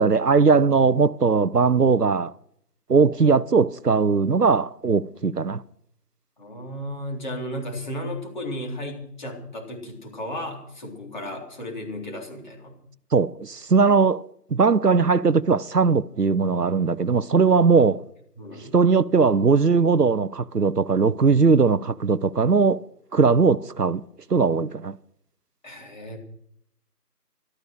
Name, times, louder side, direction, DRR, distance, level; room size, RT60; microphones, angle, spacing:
voice 1, 0.0-2.3 2.9-5.6 13.1-14.2 14.5-18.0 18.7-22.8 23.1-24.0 24.3-25.0, right 5 dB, 70° right, 0.8 m, -19 dB
voice 2, 6.4-12.8 18.4-18.8 25.6-26.2, left 1 dB, 30° left, 3.7 m, -34 dB
14.0 x 13.0 x 6.4 m
figure-of-eight pair, 165°, 49 cm